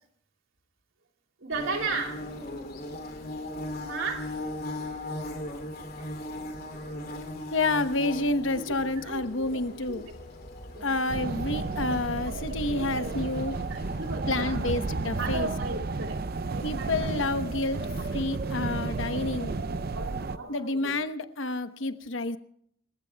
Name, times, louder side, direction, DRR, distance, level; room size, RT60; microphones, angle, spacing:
voice 1, 1.4-2.3 3.8-4.3 6.0-6.1 6.7-7.5 9.0-9.6 9.9-10.1 10.7-11.3 12.3-12.4 12.8-13.2 13.7-14.7 15.2-16.2 16.5-16.9 19.9-21.0, right 4 dB, 75° right, 3 dB, 3.1 m, -36 dB
Bird / Buzz, 1.5-14.1, left 1 dB, 50° left, 2.9 m, -39 dB
voice 2, 7.5-10.1 10.8-13.6 14.3-15.5 16.6-19.6 20.5-22.4, left 2 dB, 65° left, 9 dB, 1.1 m, -29 dB
sound 1, 11.1-20.4, right 3 dB, 50° right, 0.6 m, -32 dB
29.0 x 16.0 x 2.3 m, 0.65 s
head